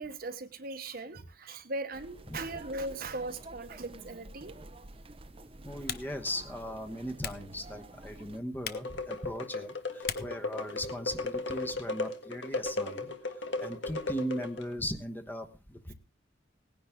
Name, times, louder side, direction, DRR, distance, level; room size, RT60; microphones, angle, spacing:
voice 1, 0.0-4.5, right 2 dB, 50° right, 8 dB, 1.1 m, -39 dB
sound 1, 1.9-8.4, right 2 dB, 30° right, 0.7 m, -49 dB
Typing, 4.0-11.5, left 9 dB, 55° left, 0.8 m, -45 dB
voice 2, 5.6-13.1 13.4-15.9, equal, 10° left, 5 dB, 1.1 m, -38 dB
sound 2, 8.7-14.7, left 2 dB, 70° left, 1.6 m, -36 dB
18.0 x 10.0 x 3.7 m, 0.31 s
head